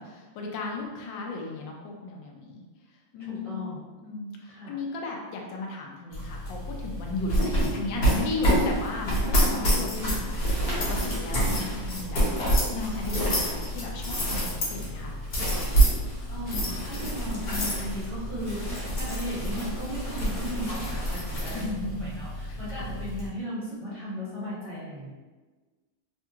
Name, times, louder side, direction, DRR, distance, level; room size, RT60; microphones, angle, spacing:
voice 1, 0.0-2.6 3.1-3.6 4.0-15.1 21.5-22.2 22.5-22.9, left 3 dB, 80° left, 0 dB, 1.2 m, -36 dB
voice 2, 3.2-3.9 4.5-4.8 9.4-9.7 15.9-25.1, equal, 25° right, -11 dB, 0.8 m, -36 dB
sound 1, 6.1-23.3, right 1 dB, 60° left, 1.4 m, -27 dB
3.4 x 2.3 x 2.8 m, 1.3 s
omnidirectional pair, 2.0 m